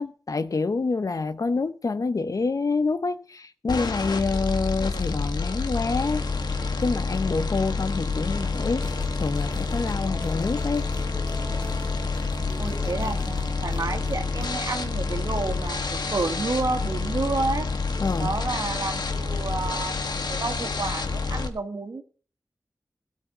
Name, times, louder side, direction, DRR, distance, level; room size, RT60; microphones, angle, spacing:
voice 1, 0.0-6.3 6.8-8.9 9.1-10.8 18.0-18.3, left 4 dB, 55° left, 0.8 m, -27 dB
sound 1, 3.7-21.5, left 4 dB, 80° left, 1.5 m, -28 dB
sound 2, 8.5-14.5, left 1 dB, 20° left, 2.8 m, -42 dB
voice 2, 12.6-17.7 18.2-22.0, right 3 dB, 60° right, 1.9 m, -30 dB
17.0 x 6.5 x 6.6 m
wide cardioid pair, 95°, 7 cm